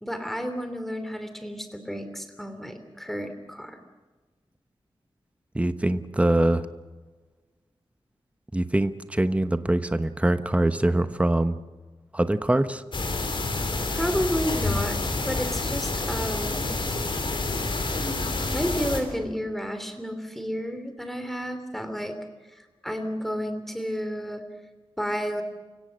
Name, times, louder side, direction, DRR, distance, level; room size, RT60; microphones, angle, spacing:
voice 1, 0.0-3.8 13.9-15.0 15.3-16.7 18.5-22.2 22.5-24.4 25.0-25.4, equal, ahead, 8 dB, 3.0 m, -31 dB
voice 2, 5.5-6.7 8.5-11.6 12.1-12.8, right 1 dB, 15° right, 10 dB, 1.0 m, -23 dB
sound 1, 12.9-19.0, left 3 dB, 60° left, 3.4 m, -28 dB
29.0 x 16.5 x 6.4 m, 1.3 s
wide cardioid pair, 90°, 10 cm